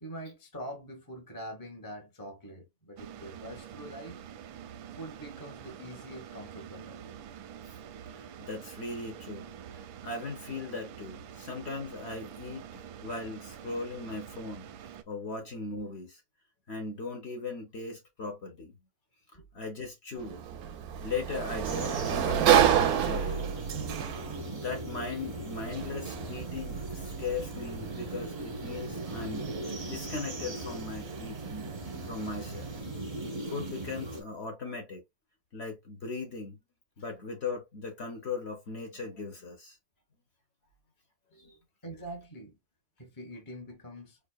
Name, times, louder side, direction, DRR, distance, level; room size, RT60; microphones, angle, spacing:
voice 1, 0.0-4.2 4.9-7.0 19.3-19.4 41.3-42.6 43.0-44.2, right 1 dB, 15° left, 0.8 m, -44 dB
sound 1, 3.0-15.0, right 9 dB, 90° right, 1.4 m, -46 dB
voice 2, 8.1-16.2 16.7-18.7 19.5-20.4 21.0-23.5 24.4-29.5 29.8-31.7 32.0-32.7 33.5-35.0 35.5-36.6 37.0-39.8 41.4-41.5, left 4 dB, 50° left, 0.8 m, -38 dB
Sliding door, 20.2-32.8, right 10 dB, 70° right, 0.9 m, -31 dB
sound 2, 21.6-34.2, right 2 dB, 35° right, 0.9 m, -39 dB
4.6 x 2.7 x 2.3 m
omnidirectional pair, 2.1 m